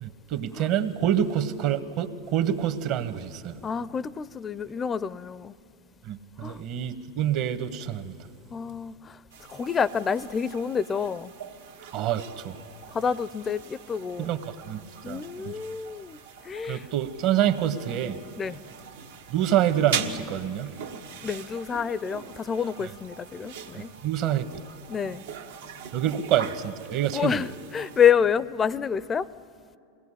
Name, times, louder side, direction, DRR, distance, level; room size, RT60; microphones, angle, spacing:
voice 1, 0.0-3.6 6.1-8.1 11.9-12.6 14.2-14.4 14.6-14.8 15.1-15.5 16.7-18.1 19.3-20.7 24.0-24.4 25.9-27.4, right 10 dB, 55° right, 10 dB, 1.3 m, -26 dB
voice 2, 3.6-5.5 6.4-6.6 8.5-9.2 9.5-11.3 12.9-14.3 15.0-16.9 18.4-18.6 21.2-23.9 24.9-25.2 27.1-29.3, left 7 dB, 25° left, 19 dB, 0.5 m, -28 dB
sound 1, 9.3-28.1, right 7 dB, 80° right, 1.4 m, -41 dB
23.0 x 17.5 x 10.0 m, 2.4 s
hypercardioid pair, 105°, 0 cm